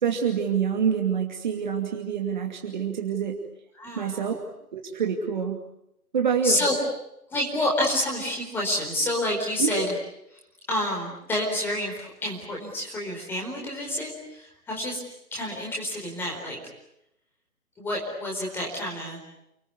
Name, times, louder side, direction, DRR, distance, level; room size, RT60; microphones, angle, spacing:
voice 1, 0.0-3.4 4.0-4.4 4.7-5.6 6.1-6.6 9.6-9.8, right 7 dB, 30° right, 3 dB, 2.5 m, -26 dB
voice 2, 3.7-4.4 6.4-6.8 7.3-9.9 10.7-15.0 15.3-16.6 17.8-19.2, left 1 dB, 5° left, -2 dB, 4.4 m, -28 dB
29.0 x 20.5 x 9.6 m, 0.82 s
figure-of-eight pair, 150°, 45 cm